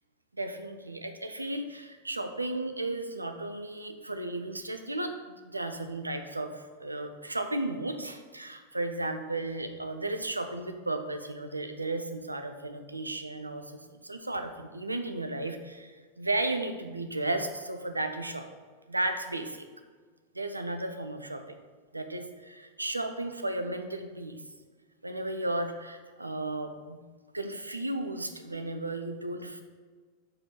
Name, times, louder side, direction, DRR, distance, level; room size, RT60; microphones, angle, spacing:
voice 1, 0.3-5.2 5.4-18.5 18.9-19.7 20.3-21.6 21.9-24.4 25.0-27.0 27.3-29.6, right 2 dB, 85° right, 7 dB, 0.5 m, -34 dB
5.1 x 4.9 x 5.8 m, 1.5 s
figure-of-eight pair, 90°, 0 cm